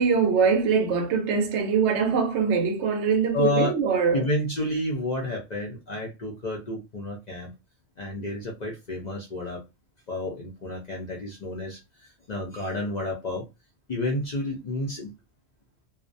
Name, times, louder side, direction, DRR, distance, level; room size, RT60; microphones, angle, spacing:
voice 1, 0.0-4.3, right 5 dB, 65° right, 0.8 m, -23 dB
voice 2, 3.3-3.7 4.1-7.5 8.0-9.6 10.1-13.4 13.9-15.1, left 1 dB, 50° left, 0.5 m, -30 dB
2.4 x 2.0 x 2.5 m
omnidirectional pair, 1.4 m